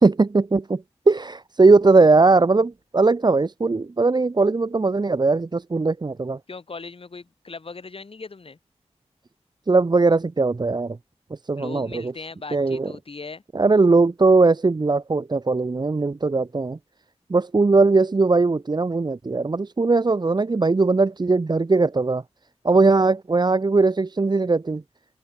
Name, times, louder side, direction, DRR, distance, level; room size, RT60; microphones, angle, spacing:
voice 1, 0.0-6.4 9.7-11.0 11.4-12.1 12.5-12.9 13.5-16.8 17.3-22.2 22.6-24.8, right 3 dB, 40° right, 1.4 m, -19 dB
voice 2, 6.5-8.6 11.5-13.4 22.7-22.8, left 4 dB, 55° left, 6.9 m, -38 dB
wide cardioid pair, 95°, 11 cm